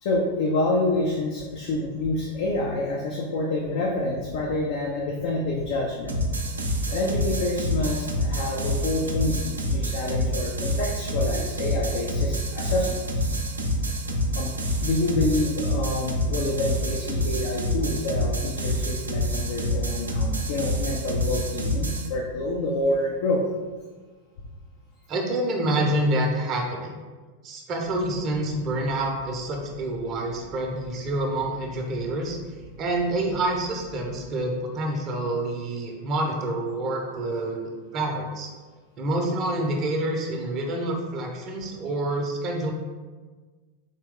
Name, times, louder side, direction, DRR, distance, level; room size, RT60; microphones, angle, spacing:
voice 1, 0.0-6.2 6.9-13.2 14.3-14.5 14.8-23.4, left 2 dB, 50° left, -1 dB, 0.5 m, -27 dB
sound 1, 6.1-22.1, equal, 75° right, 0.5 m, -27 dB
voice 2, 25.1-27.0 27.4-32.4 32.8-38.5 39.0-42.7, right 1 dB, 35° right, 1 dB, 0.6 m, -27 dB
sound 2, 27.8-34.4, left 2 dB, 70° left, 0.9 m, -47 dB
4.1 x 3.0 x 3.5 m, 1.4 s
figure-of-eight pair, 90°, 0 cm